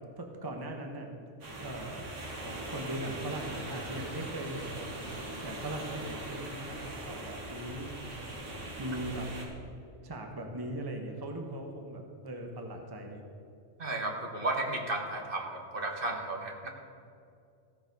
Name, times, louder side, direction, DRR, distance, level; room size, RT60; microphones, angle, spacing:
voice 1, 0.2-2.1 2.7-4.8 5.4-6.8 7.1-8.1 8.8-9.3 10.0-13.2, right 1 dB, 20° right, 3 dB, 1.0 m, -39 dB
sound 1, 1.4-9.5, right 1 dB, 85° right, 2.0 m, -41 dB
voice 2, 13.8-16.7, right 2 dB, 50° right, 2 dB, 1.4 m, -33 dB
15.0 x 7.0 x 5.3 m, 2.4 s
omnidirectional pair, 1.2 m